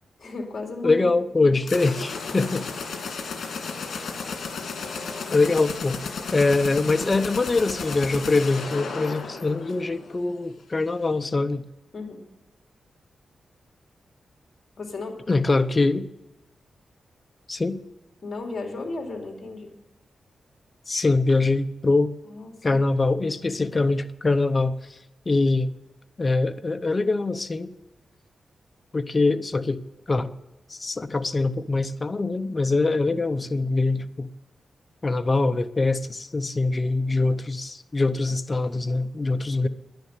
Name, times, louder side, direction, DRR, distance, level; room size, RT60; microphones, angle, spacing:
voice 1, 0.2-1.1 1.4-1.7 11.9-12.2 14.8-15.2 18.2-19.7 22.2-22.8 39.6-39.7, left 3 dB, 45° left, 3 dB, 2.9 m, -35 dB
voice 2, 0.8-2.7 5.3-6.0 6.3-11.6 15.3-16.1 17.5-17.8 20.9-22.2 22.6-24.8 25.3-25.7 26.2-27.7 28.9-29.8 30.1-30.3 30.7-34.3 35.0-39.7, left 3 dB, 30° left, 11 dB, 0.7 m, -23 dB
sound 1, 1.6-10.3, left 4 dB, 75° left, 2.2 m, -34 dB
10.5 x 10.5 x 8.1 m, 1.0 s
wide cardioid pair, 110°, 0 cm